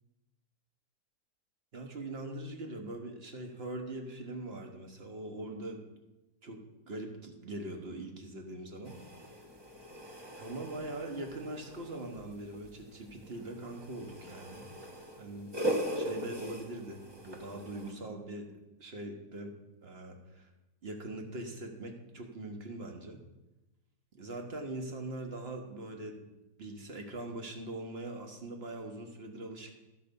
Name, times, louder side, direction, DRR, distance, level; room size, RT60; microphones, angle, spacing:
voice 1, 1.7-5.8 6.4-9.0 10.4-14.7 15.2-18.5 18.8-19.5 19.8-20.5 20.8-23.2 24.1-26.2 26.6-29.8, right 2 dB, 40° right, 4 dB, 1.3 m, -42 dB
sound 1, 8.8-17.9, right 1 dB, 20° right, 1.0 m, -40 dB
12.5 x 5.0 x 6.8 m, 1.0 s
omnidirectional pair, 1.7 m